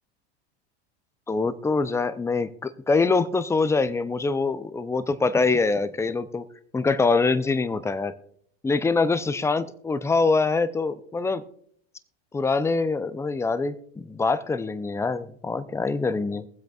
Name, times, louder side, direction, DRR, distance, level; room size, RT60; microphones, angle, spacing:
voice 1, 1.3-6.5 6.7-8.1 8.6-11.4 12.3-16.5, left 4 dB, 10° left, 0.5 m, -24 dB
22.0 x 7.7 x 2.4 m
hypercardioid pair, 100°, 32 cm